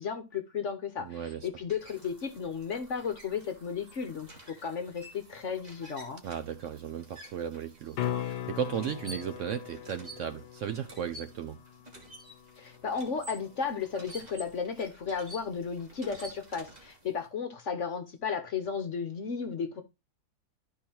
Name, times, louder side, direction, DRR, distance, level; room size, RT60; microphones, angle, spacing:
voice 1, 0.0-6.2 12.6-19.8, left 6 dB, 55° left, 1.1 m, -34 dB
sound 1, 1.0-17.2, right 1 dB, 25° right, 2.1 m, -51 dB
voice 2, 1.0-1.5 6.2-11.6, right 8 dB, 70° right, 0.7 m, -35 dB
sound 2, 7.9-14.0 18.7-18.8, left 11 dB, 85° left, 1.2 m, -40 dB
12.0 x 4.6 x 2.8 m
omnidirectional pair, 1.7 m